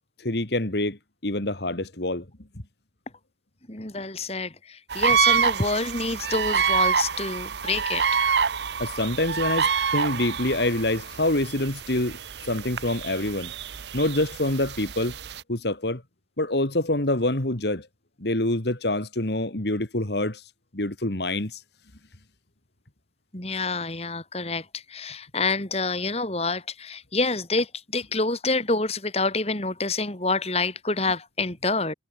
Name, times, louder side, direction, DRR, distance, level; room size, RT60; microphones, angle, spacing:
voice 1, 0.2-1.0 1.2-2.2 8.8-12.2 12.4-13.5 13.9-15.1 15.5-16.0 16.4-17.9 18.2-20.4 20.7-21.6, left 1 dB, 65° left, 2.5 m, -26 dB
voice 2, 3.7-8.3 23.3-31.9, left 3 dB, 35° left, 3.3 m, -27 dB
sound 1, 4.9-15.4, right 6 dB, 70° right, 0.7 m, -27 dB
head